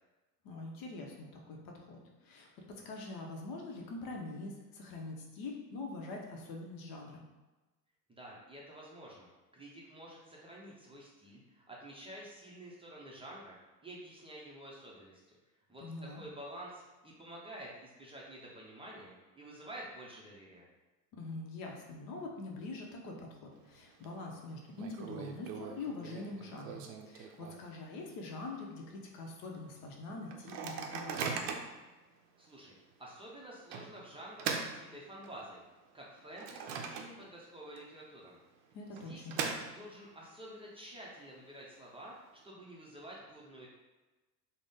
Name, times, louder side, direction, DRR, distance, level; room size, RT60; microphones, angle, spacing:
voice 1, 0.4-7.2 15.8-16.2 21.1-31.4 38.7-39.4, left 2 dB, 45° left, 0 dB, 0.8 m, -44 dB
voice 2, 8.1-13.6 13.8-15.4 15.7-20.7 32.4-35.6 35.9-38.4 39.1-43.7, right 1 dB, 10° right, -5 dB, 0.6 m, -50 dB
Microwave oven, 23.5-24.1 24.3-24.4 24.8-27.9 28.3-28.4 28.6-29.0 29.5-29.6 30.3-31.8 32.4-32.6 33.7-35.5 36.0-37.5 37.8-37.9 38.7-40.1, right 5 dB, 55° right, 0.6 m, -40 dB
3.7 x 2.1 x 3.5 m, 1.2 s
hypercardioid pair, 75°, 49 cm